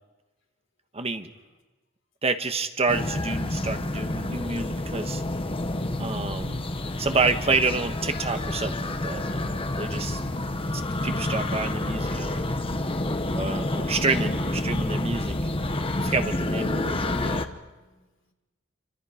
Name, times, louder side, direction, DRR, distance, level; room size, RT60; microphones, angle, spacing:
voice 1, 0.9-1.3 2.2-5.2 6.0-6.7 7.0-10.2 10.7-12.4 13.3-15.4 16.0-17.5, right 4 dB, 30° right, 7 dB, 1.3 m, -28 dB
sound 1, 2.9-17.5, left 1 dB, 25° left, 1.1 m, -29 dB
voice 2, 16.9-18.3, left 1 dB, 65° left, 2 dB, 3.7 m, -66 dB
28.0 x 25.5 x 5.1 m, 1.2 s
head